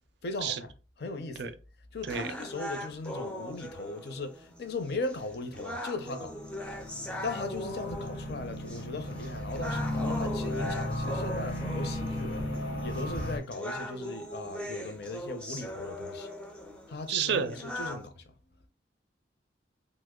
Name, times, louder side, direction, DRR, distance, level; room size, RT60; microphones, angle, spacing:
voice 1, 0.2-0.7 1.0-1.5 1.9-6.4 7.2-16.3 16.9-18.7, left 3 dB, 60° left, 0.5 m, -38 dB
sound 1, 2.1-18.1, equal, 5° left, 0.4 m, -40 dB
sound 2, 6.3-13.4, left 1 dB, 90° left, 0.8 m, -35 dB
voice 2, 17.1-17.5, right 7 dB, 65° right, 0.4 m, -29 dB
2.9 x 2.0 x 3.6 m
head